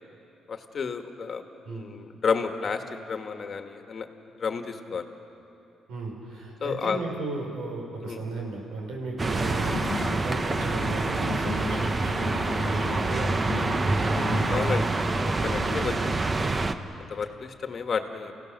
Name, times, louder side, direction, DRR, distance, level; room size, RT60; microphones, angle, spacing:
voice 1, 0.5-1.4 1.7-4.1 4.4-5.0 6.6-7.0 8.0-8.2 14.5-15.9 17.1-18.3, left 5 dB, 45° left, 6 dB, 1.6 m, -31 dB
voice 2, 5.9-14.3 15.9-16.1, right 3 dB, 80° right, 0 dB, 5.3 m, -35 dB
sound 1, 9.2-16.7, right 3 dB, 30° right, 1.0 m, -26 dB
sound 2, 9.4-16.3, left 8 dB, 70° left, 0.9 m, -38 dB
29.0 x 16.5 x 6.6 m, 2.9 s
cardioid pair, 90°, 0 cm